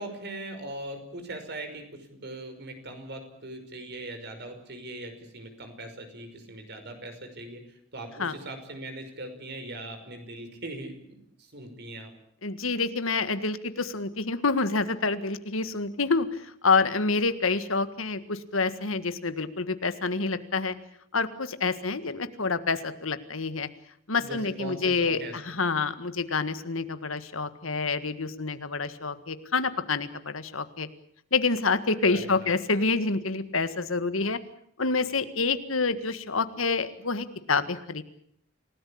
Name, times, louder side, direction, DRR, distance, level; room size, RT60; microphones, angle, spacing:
voice 1, 0.0-7.6 7.9-11.0 11.4-12.1 24.2-25.4 32.1-32.5, right 1 dB, 55° right, 7 dB, 5.6 m, -40 dB
voice 2, 12.4-20.7 21.1-23.7 24.1-30.9 31.3-34.4 34.8-38.0, left 4 dB, 85° left, 11 dB, 1.8 m, -27 dB
28.5 x 18.0 x 8.7 m, 0.68 s
head